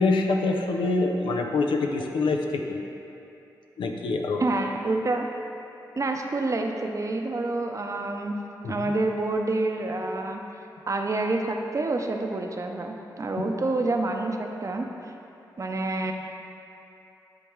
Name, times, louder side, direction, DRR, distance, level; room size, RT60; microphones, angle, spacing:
voice 1, 0.0-2.8 3.8-4.4 8.6-8.9 13.4-13.5, left 3 dB, 85° left, 3 dB, 0.5 m, -25 dB
voice 2, 4.4-5.3 6.0-8.3 8.7-10.4 10.9-15.1 15.6-16.1, right 2 dB, 40° right, 3 dB, 0.6 m, -28 dB
10.0 x 3.5 x 3.1 m, 2.8 s
cardioid pair, 50°, 8 cm